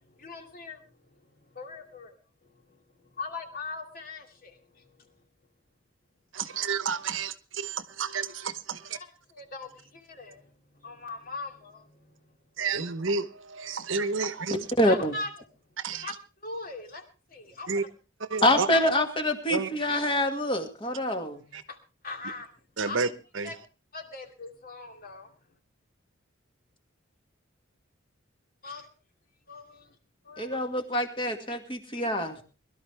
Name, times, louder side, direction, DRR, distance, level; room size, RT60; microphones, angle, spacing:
voice 1, 0.2-0.8 1.5-2.2 2.7-2.8 3.2-4.8 8.9-10.5 10.8-11.9 14.8-15.3 16.0-16.1 16.4-17.0 17.3-17.7 21.7-21.8 22.0-22.5 22.9-23.0 23.4-23.5 23.9-25.3 28.6-28.9 29.5-29.9 30.2-30.6, left 3 dB, 45° left, 4 dB, 2.5 m, -40 dB
voice 2, 6.3-9.0 12.6-14.7 15.8-16.2 17.7-17.8 18.2-18.7 19.5-19.7 21.5-21.6 22.8-23.6, right 4 dB, 75° right, 12 dB, 1.0 m, -31 dB
voice 3, 14.8-15.1 18.4-21.4 30.4-32.4, left 1 dB, 25° left, 5 dB, 2.1 m, -26 dB
22.0 x 12.5 x 3.4 m, 0.33 s
head